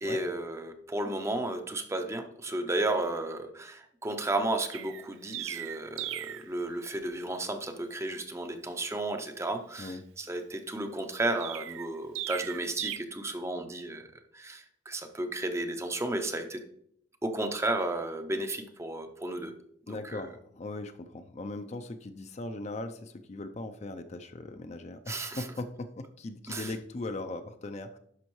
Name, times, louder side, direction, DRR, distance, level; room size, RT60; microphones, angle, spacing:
voice 1, 0.0-14.0 14.3-16.6 17.2-19.5 20.0-20.2 25.1-25.4 26.5-26.7, right 2 dB, 15° right, 7 dB, 0.6 m, -33 dB
Chirp tweet, 4.7-6.5 11.4-13.0, right 12 dB, 85° right, 0.4 m, -37 dB
voice 2, 19.9-28.0, left 2 dB, 35° left, 8 dB, 0.4 m, -39 dB
11.5 x 5.5 x 3.1 m, 0.72 s
head